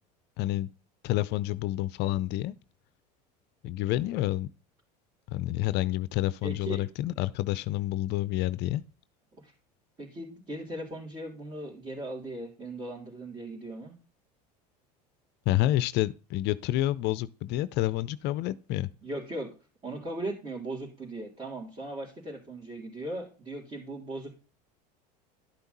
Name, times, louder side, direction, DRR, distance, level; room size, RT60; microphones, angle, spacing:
voice 1, 0.4-0.7 1.0-2.5 3.6-4.5 5.3-8.8 15.5-18.9, left 15 dB, 55° left, 0.6 m, -28 dB
voice 2, 6.4-6.9 9.4-9.5 10.0-13.9 19.0-19.5 19.8-24.4, right 1 dB, 30° right, 3.4 m, -38 dB
12.0 x 5.8 x 4.1 m
hypercardioid pair, 85°, 21 cm